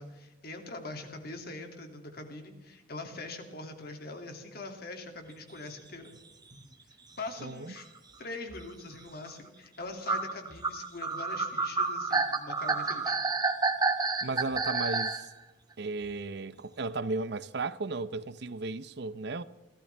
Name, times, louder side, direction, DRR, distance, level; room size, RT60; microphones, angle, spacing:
voice 1, 0.0-6.1 7.2-7.9 8.2-13.2, left 2 dB, 60° left, 2.6 m, -42 dB
sound 1, 6.1-6.2 6.5-6.7 7.5-7.6 7.8-7.9 8.5-8.7 9.3-9.4 10.1-15.2, right 4 dB, 20° right, 1.2 m, -29 dB
voice 2, 7.4-7.7 14.2-15.2 15.8-19.4, right 3 dB, 65° right, 0.7 m, -35 dB
29.5 x 13.5 x 3.4 m
head